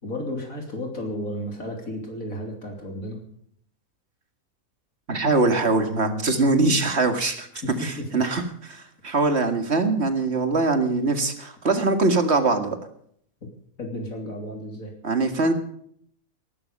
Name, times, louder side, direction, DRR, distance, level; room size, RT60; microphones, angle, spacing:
voice 1, 0.0-3.2 7.6-8.2 13.8-14.9, left 1 dB, 70° left, 2 dB, 3.7 m, -33 dB
voice 2, 5.1-7.5 7.8-12.8 15.0-15.5, right 3 dB, 50° right, 7 dB, 2.2 m, -22 dB
18.5 x 12.5 x 5.5 m, 0.66 s
omnidirectional pair, 1.5 m